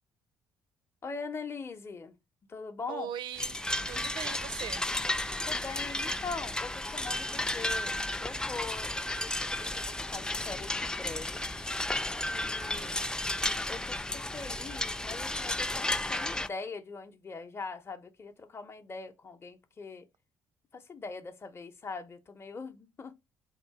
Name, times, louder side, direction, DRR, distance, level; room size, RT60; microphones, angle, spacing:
voice 1, 1.0-2.1 2.5-3.1 3.8-4.2 5.5-7.9 8.2-8.9 9.2-11.4 12.3-12.9 13.7-20.0 20.7-23.1, left 4 dB, 30° left, 0.7 m, -42 dB
voice 2, 2.9-3.6 3.9-4.8 12.6-13.1, right 9 dB, 70° right, 0.5 m, -41 dB
sound 1, 3.4-16.5, left 1 dB, 10° left, 0.3 m, -33 dB
3.6 x 2.7 x 4.7 m
supercardioid pair, 70°, 8 cm